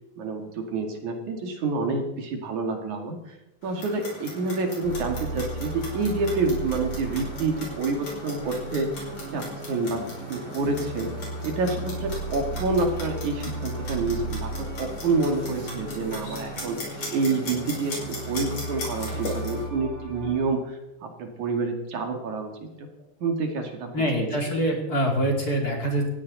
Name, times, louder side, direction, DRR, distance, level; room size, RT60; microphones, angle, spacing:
voice 1, 0.2-3.4 3.6-8.9 9.3-10.0 10.3-11.1 11.4-14.5 14.8-22.5 23.2-23.9 24.2-24.3, right 3 dB, 75° right, 3 dB, 3.7 m, -28 dB
Clock, 3.6-19.6, left 1 dB, 60° left, 6.9 m, -39 dB
sound 1, 4.8-20.3, right 2 dB, 90° right, 7.4 m, -35 dB
voice 2, 23.9-26.1, equal, 30° left, 1 dB, 2.9 m, -25 dB
19.0 x 16.0 x 4.2 m, 0.94 s
omnidirectional pair, 3.5 m